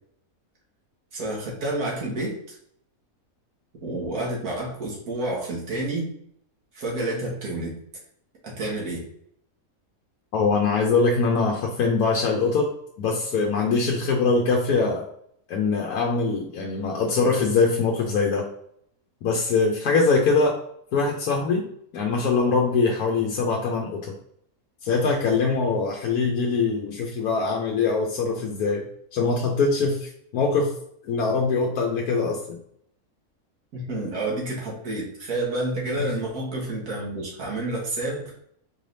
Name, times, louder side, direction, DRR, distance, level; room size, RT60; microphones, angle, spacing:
voice 1, 1.1-2.6 3.8-6.1 6.7-7.8 8.4-9.1 33.7-38.3, right 2 dB, 85° right, -4 dB, 1.9 m, -29 dB
voice 2, 10.3-12.7 13.0-15.1 15.5-18.5 19.2-20.6 20.9-21.7 21.9-24.2 24.8-28.8 29.1-30.7 31.0-32.6, left 4 dB, 85° left, -1 dB, 1.2 m, -23 dB
4.5 x 3.3 x 2.6 m, 0.68 s
omnidirectional pair, 1.6 m